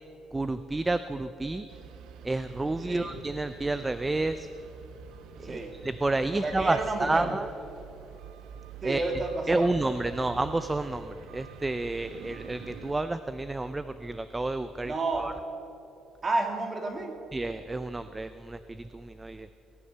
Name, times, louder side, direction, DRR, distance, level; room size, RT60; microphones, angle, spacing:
voice 1, 0.3-1.7 2.2-4.5 5.4-7.5 8.8-9.1 9.5-14.9 15.2-15.3 17.3-19.5, right 2 dB, 15° right, 12 dB, 0.4 m, -30 dB
sound 1, 1.7-12.9, right 7 dB, 80° right, 0.9 m, -47 dB
voice 2, 5.4-5.8 6.3-7.3 8.8-9.7 14.8-15.4 16.2-17.1, right 3 dB, 30° right, 4 dB, 2.0 m, -31 dB
19.0 x 10.5 x 6.7 m, 2.8 s
cardioid pair, 135°, 0 cm